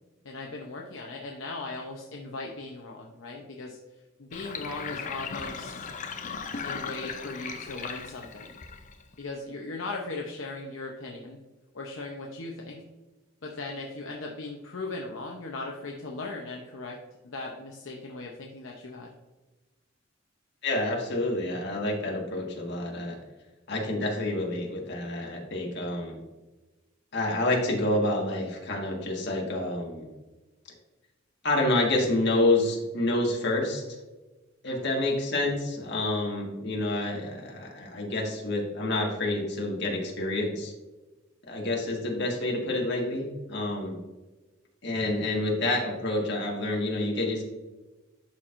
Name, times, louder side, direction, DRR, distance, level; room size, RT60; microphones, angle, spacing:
voice 1, 0.2-3.8 4.2-5.9 6.6-8.6 9.2-11.4 11.7-12.8 13.4-17.0 17.2-19.1 34.7-34.9, left 3 dB, 75° left, 0 dB, 0.8 m, -38 dB
Sink (filling or washing), 4.3-9.2, left 5 dB, 40° left, 0.5 m, -37 dB
voice 2, 20.6-23.2 23.7-26.2 27.1-30.1 31.4-33.8 34.6-40.7 41.5-44.0 44.8-47.4, left 2 dB, 55° left, 0 dB, 1.6 m, -28 dB
11.5 x 4.4 x 2.6 m, 1.2 s
head